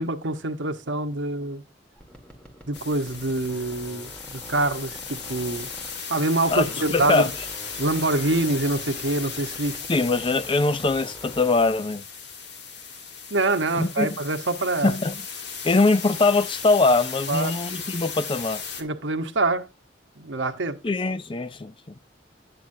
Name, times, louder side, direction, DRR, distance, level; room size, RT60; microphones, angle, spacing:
voice 1, 0.0-1.6 2.7-5.7 6.1-7.3 7.8-9.8 13.3-15.0 17.3-17.5 18.8-19.7 20.2-20.8, right 2 dB, 80° right, 1.1 m, -25 dB
sound 1, 2.0-6.2 6.5-11.9, right 1 dB, 5° left, 1.9 m, -46 dB
sound 2, 2.7-18.8, left 6 dB, 65° left, 1.7 m, -36 dB
voice 2, 6.5-7.3 9.9-12.0 13.7-14.2 14.8-15.2 15.6-18.6 20.8-21.9, left 3 dB, 25° left, 0.5 m, -22 dB
9.9 x 9.1 x 2.7 m
head